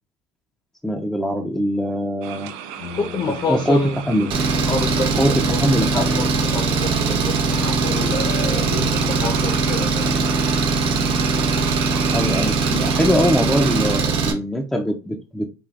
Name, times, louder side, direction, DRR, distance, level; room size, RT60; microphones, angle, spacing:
voice 1, 0.8-2.5 3.5-4.3 5.2-6.1 12.1-15.5, equal, 5° left, 0.5 m, -22 dB
sound 1, 2.2-14.0, right 8 dB, 85° right, 0.4 m, -34 dB
Brass instrument, 2.8-12.3, left 7 dB, 75° left, 1.5 m, -38 dB
voice 2, 2.9-4.0 4.7-10.2, left 4 dB, 45° left, 0.8 m, -28 dB
Engine, 4.3-14.3, right 4 dB, 55° right, 0.9 m, -21 dB
4.6 x 2.4 x 2.4 m
supercardioid pair, 90°, 10 cm